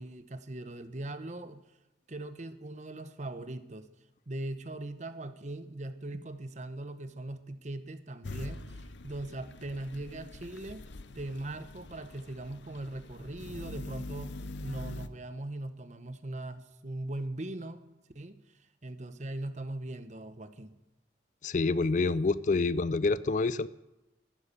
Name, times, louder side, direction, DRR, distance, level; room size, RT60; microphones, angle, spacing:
voice 1, 0.0-1.6 2.1-3.9 4.3-10.8 11.1-17.8 18.1-18.3 18.8-20.7, right 1 dB, 40° right, 11 dB, 0.9 m, -40 dB
sound 1, 8.2-15.1, left 2 dB, 75° left, 0.7 m, -44 dB
voice 2, 21.4-23.7, left 3 dB, 40° left, 17 dB, 0.4 m, -27 dB
12.0 x 9.6 x 9.9 m, 0.96 s
head